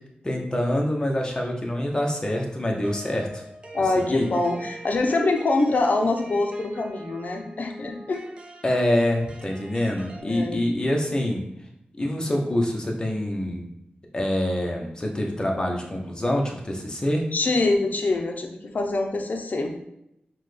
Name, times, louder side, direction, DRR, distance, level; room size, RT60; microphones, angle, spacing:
voice 1, 0.2-3.4 3.9-4.3 8.6-11.4 12.0-13.6 14.1-17.3, left 1 dB, 25° left, 1 dB, 0.7 m, -25 dB
sound 1, 2.8-10.2, right 1 dB, 30° right, 0.6 m, -44 dB
voice 2, 3.7-8.2 10.2-10.6 17.3-19.8, left 2 dB, 55° left, 4 dB, 0.6 m, -24 dB
5.8 x 2.2 x 3.2 m, 0.82 s
wide cardioid pair, 105°, 3 cm